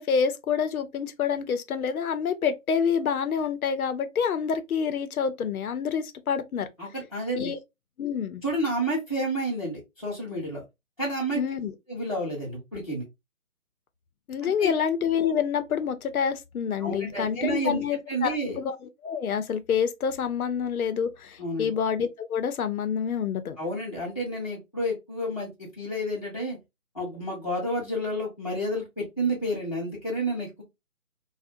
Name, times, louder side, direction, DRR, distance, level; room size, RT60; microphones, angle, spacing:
voice 1, 0.0-6.7 7.4-7.6 8.0-8.4 11.3-11.7 14.3-23.6, left 7 dB, 90° left, 0.6 m, -27 dB
voice 2, 6.8-7.5 8.4-10.6 11.0-11.4 11.9-13.0 14.4-14.8 16.8-17.8 18.1-18.6 21.4-21.7 23.6-25.5 25.8-26.6 26.9-30.6, right 1 dB, 25° left, 0.6 m, -30 dB
2.6 x 2.1 x 2.4 m
hypercardioid pair, 170°, 42 cm